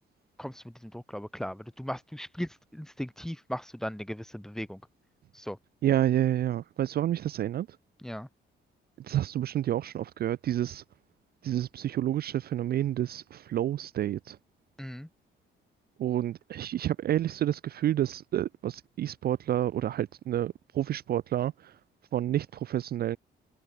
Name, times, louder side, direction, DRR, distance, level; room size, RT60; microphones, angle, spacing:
voice 1, 0.4-4.8 5.3-5.6 8.0-8.3 14.8-15.1, equal, ahead, 0.9 m, -38 dB
voice 2, 5.8-7.7 9.0-10.8 11.4-14.4 16.0-21.7 22.1-23.2, right 12 dB, 50° right, 0.4 m, -29 dB
cardioid pair, 90°, 20 cm